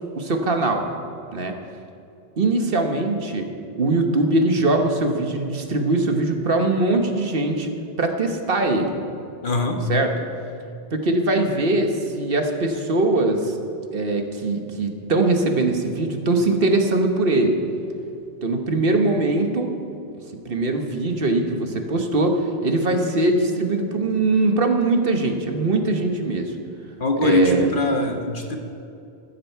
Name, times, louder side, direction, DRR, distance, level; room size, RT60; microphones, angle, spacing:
voice 1, 0.1-0.8 1.3-1.5 2.4-3.5 3.8-7.7 8.0-8.9 9.9-10.1 10.9-13.5 13.9-17.6 18.4-19.7 20.4-26.5 27.2-27.7, right 2 dB, 55° right, 4 dB, 1.3 m, -21 dB
voice 2, 9.4-9.8 27.0-28.6, left 2 dB, 50° left, 3 dB, 1.3 m, -21 dB
14.5 x 13.5 x 4.6 m, 2.6 s
omnidirectional pair, 1.2 m